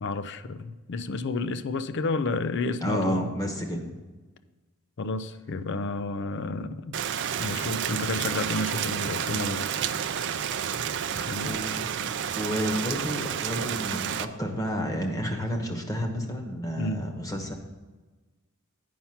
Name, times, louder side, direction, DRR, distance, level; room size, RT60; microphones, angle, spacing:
voice 1, 0.0-3.3 3.6-3.7 5.0-7.0 7.4-9.7 11.3-11.7 16.8-17.0, left 3 dB, 55° left, 0.5 m, -31 dB
voice 2, 2.8-3.9 11.4-11.7 12.3-17.5, equal, 15° left, 1.1 m, -31 dB
Rain, 6.9-14.3, right 8 dB, 55° right, 0.4 m, -30 dB
9.3 x 5.8 x 5.7 m
head